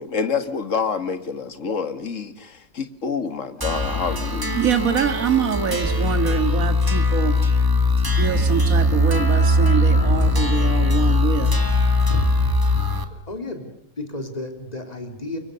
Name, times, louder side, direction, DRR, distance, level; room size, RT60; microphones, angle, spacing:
voice 1, 0.0-4.6, left 5 dB, 50° left, 11 dB, 1.9 m, -27 dB
sound 1, 3.6-13.0, left 1 dB, 15° right, 1.9 m, -20 dB
voice 2, 4.6-7.4 8.2-11.5, right 7 dB, 55° right, 9 dB, 2.1 m, -24 dB
voice 3, 12.0-12.3 13.3-13.7 14.0-15.4, left 1 dB, 25° left, 5 dB, 3.7 m, -31 dB
29.5 x 24.0 x 6.8 m, 0.66 s
omnidirectional pair, 1.8 m